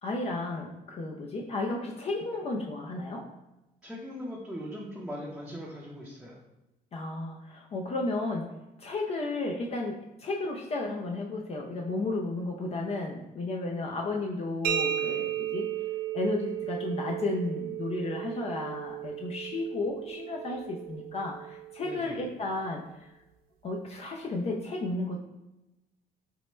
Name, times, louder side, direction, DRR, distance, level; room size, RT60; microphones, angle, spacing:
voice 1, 0.0-3.3 6.9-8.5 8.8-15.7 16.1-22.8 23.6-25.2, left 2 dB, 40° left, 0 dB, 0.5 m, -33 dB
voice 2, 3.8-6.4 21.8-22.1, equal, ahead, -6 dB, 0.6 m, -40 dB
sound 1, 14.6-22.2, right 11 dB, 60° right, 0.4 m, -35 dB
4.5 x 2.1 x 3.1 m, 0.96 s
cardioid pair, 110°, 17 cm